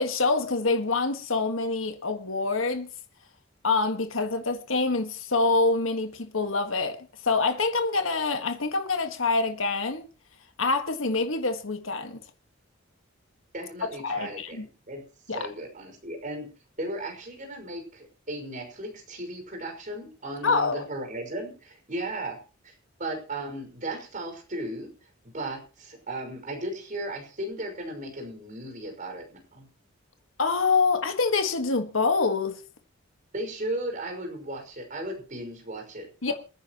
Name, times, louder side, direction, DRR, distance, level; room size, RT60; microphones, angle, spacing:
voice 1, 0.0-2.9 3.6-7.0 7.2-10.1 10.6-12.2 14.0-14.7 15.3-15.5 20.4-20.8 30.4-32.6 36.2-36.3, left 3 dB, 85° left, 1.7 m, -26 dB
voice 2, 13.5-15.0 15.3-16.5 16.8-22.4 22.6-22.7 23.0-24.9 25.3-29.7 33.3-36.3, right 1 dB, 40° right, 5.7 m, -36 dB
28.0 x 10.0 x 3.0 m
head